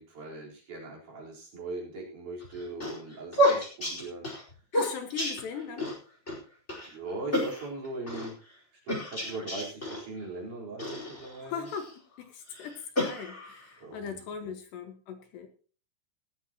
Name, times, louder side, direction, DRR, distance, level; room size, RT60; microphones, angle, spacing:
voice 1, 0.0-4.5 6.9-8.4 8.7-11.7 13.8-14.5, right 2 dB, 45° right, -3 dB, 5.4 m, -40 dB
sound 1, 2.4-6.0 6.3-6.4 6.7-6.9 7.3-8.3 8.9-10.0 10.8-11.9 12.5-13.7, equal, 15° left, 4.3 m, -30 dB
voice 2, 4.7-5.9 11.4-11.9 12.2-15.5, left 7 dB, 70° left, 6 dB, 3.5 m, -39 dB
18.0 x 14.0 x 3.0 m, 0.39 s
omnidirectional pair, 5.4 m